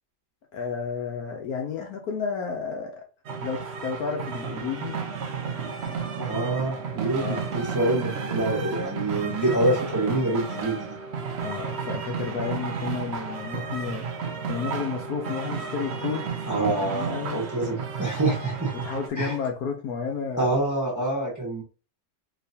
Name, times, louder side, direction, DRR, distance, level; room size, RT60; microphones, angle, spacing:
voice 1, 0.5-3.0 3.4-5.0 7.2-7.4 11.4-16.2 16.8-17.4 18.7-20.6, left 6 dB, 70° left, 1.0 m, -32 dB
sound 1, 3.2-19.1, right 6 dB, 65° right, 0.6 m, -32 dB
voice 2, 6.1-10.9 16.5-18.7 19.2-19.4 20.4-21.6, right 2 dB, 15° right, 0.9 m, -26 dB
4.0 x 3.0 x 2.7 m
omnidirectional pair, 1.9 m